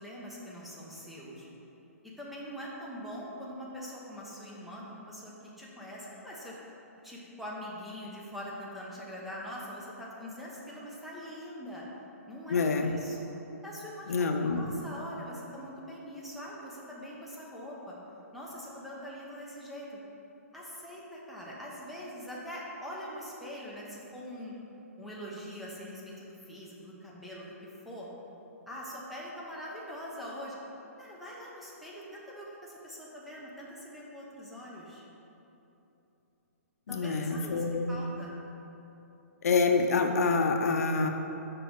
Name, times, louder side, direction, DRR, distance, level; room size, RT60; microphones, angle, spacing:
voice 1, 0.0-1.5 2.0-6.7 7.0-11.9 12.3-13.3 13.6-17.9 18.3-19.9 20.5-24.6 25.0-28.1 28.7-30.6 31.0-35.0 36.9-38.3, equal, ahead, -6 dB, 0.8 m, -43 dB
voice 2, 12.5-13.0 14.1-14.9 36.9-38.0 39.4-41.1, left 4 dB, 75° left, 5 dB, 0.6 m, -27 dB
6.2 x 4.7 x 4.7 m, 3.0 s
hypercardioid pair, 155°, 8 cm